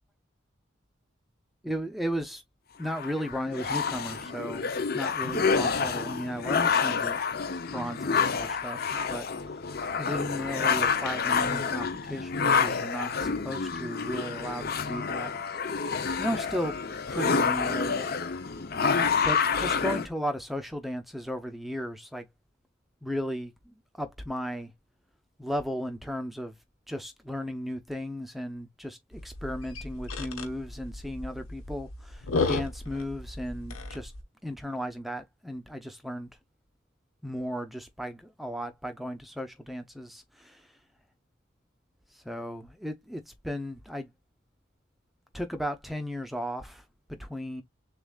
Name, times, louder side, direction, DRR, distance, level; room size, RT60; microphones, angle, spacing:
voice 1, 1.6-2.4 2.8-7.2 7.7-8.8 9.1-9.3 10.0-15.3 16.2-16.8 17.1-18.1 19.2-22.3 23.0-23.5 24.0-24.7 25.4-26.5 26.9-32.2 32.5-34.1 34.4-36.3 37.2-40.5 42.2-44.1 45.3-46.8 47.1-47.6, equal, ahead, 0.7 m, -35 dB
sound 1, 2.8-20.1, left 5 dB, 45° left, 0.7 m, -28 dB
sound 2, 29.1-34.2, left 3 dB, 85° left, 1.2 m, -34 dB
6.8 x 2.5 x 2.3 m
head